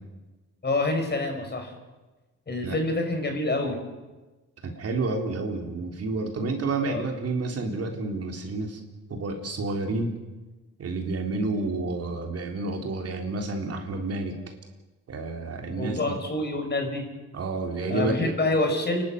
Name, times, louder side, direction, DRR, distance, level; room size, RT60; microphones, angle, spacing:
voice 1, 0.6-1.7 2.5-3.8 6.8-7.0 15.8-17.1 17.9-19.0, left 2 dB, 35° left, 4 dB, 5.6 m, -27 dB
voice 2, 4.6-8.8 9.1-10.1 10.8-14.3 15.1-16.0 17.3-18.3, right 3 dB, 55° right, 3 dB, 3.9 m, -30 dB
29.0 x 12.0 x 9.4 m, 1.2 s
cardioid pair, 90°, 30 cm